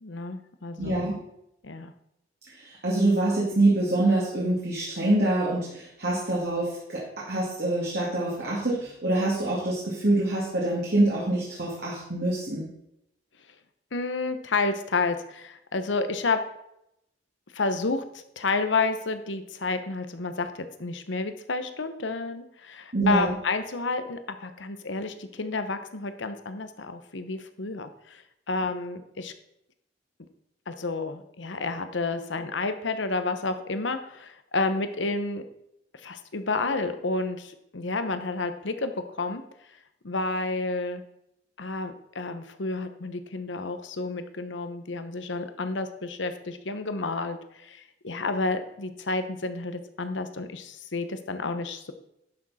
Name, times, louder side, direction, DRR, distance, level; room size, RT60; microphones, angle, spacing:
voice 1, 0.0-1.1 1.6-1.9 13.9-16.4 17.5-18.0 18.4-20.5 20.8-28.2 28.5-29.3 30.7-35.4 36.0-39.4 40.0-41.0 41.6-51.9, left 3 dB, 75° left, 9 dB, 1.0 m, -30 dB
voice 2, 0.8-1.2 2.8-12.7 22.9-23.4, right 2 dB, 60° right, -5 dB, 2.3 m, -25 dB
11.0 x 6.4 x 4.2 m, 0.80 s
head